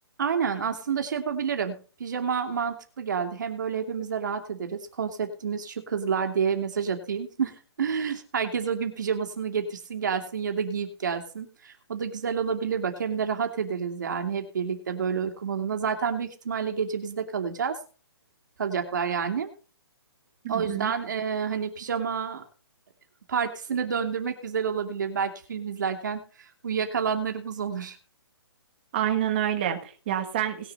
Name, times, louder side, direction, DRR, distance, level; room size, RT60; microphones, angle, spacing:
voice 1, 0.2-17.8 18.6-19.5 20.5-22.4 23.3-26.2 26.6-28.0, right 6 dB, 45° right, 5 dB, 2.7 m, -29 dB
voice 2, 20.4-20.9 28.9-30.7, right 10 dB, 25° right, 5 dB, 1.6 m, -28 dB
19.5 x 7.1 x 4.3 m, 0.38 s
hypercardioid pair, 180°, 14 cm